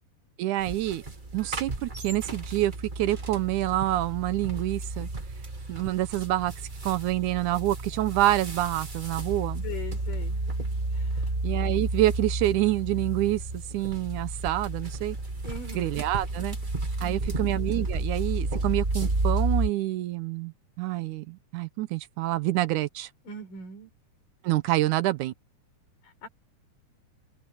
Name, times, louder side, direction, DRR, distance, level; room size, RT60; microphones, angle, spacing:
voice 1, 0.4-1.0 1.3-5.1 5.7-6.5 6.8-9.6 11.4-15.2 15.7-16.6 17.0-23.1 24.4-25.3, right 15 dB, 80° right, 2.1 m, -27 dB
sound 1, 0.6-19.7, right 2 dB, 40° right, 0.7 m, -32 dB
voice 2, 9.6-10.4 10.9-11.3 15.4-16.0 17.0-17.5 23.3-23.9 26.0-26.3, left 2 dB, 90° left, 7.5 m, -41 dB
omnidirectional pair, 3.7 m